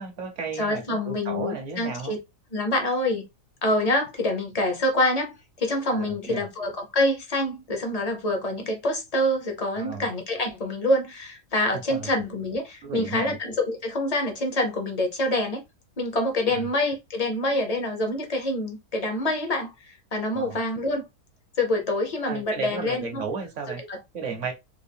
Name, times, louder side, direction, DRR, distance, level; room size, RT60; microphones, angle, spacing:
voice 1, 0.0-2.1 5.9-6.4 9.7-10.1 11.9-12.1 12.8-13.4 16.5-16.6 20.3-20.6 22.2-23.8 24.1-24.5, right 4 dB, 55° right, 1.0 m, -34 dB
voice 2, 0.6-2.2 2.5-3.2 3.6-15.6 16.0-21.1 21.6-23.2 23.9-24.0, left 1 dB, 40° left, 0.5 m, -26 dB
3.5 x 2.4 x 3.4 m
omnidirectional pair, 1.8 m